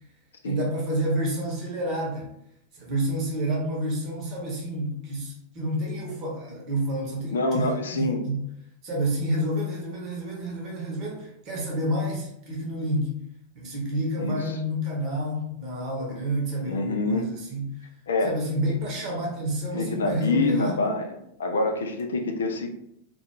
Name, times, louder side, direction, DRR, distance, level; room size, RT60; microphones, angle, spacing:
voice 1, 0.4-2.3 2.7-8.4 8.8-13.2 13.5-17.9 18.2-21.0, equal, 35° right, -2 dB, 0.8 m, -29 dB
voice 2, 7.3-8.2 14.2-14.4 16.6-17.3 18.1-18.4 19.7-21.1 21.4-22.7, left 2 dB, 65° left, 4 dB, 0.3 m, -26 dB
2.2 x 2.2 x 2.9 m, 0.76 s
figure-of-eight pair, 90°, 0 cm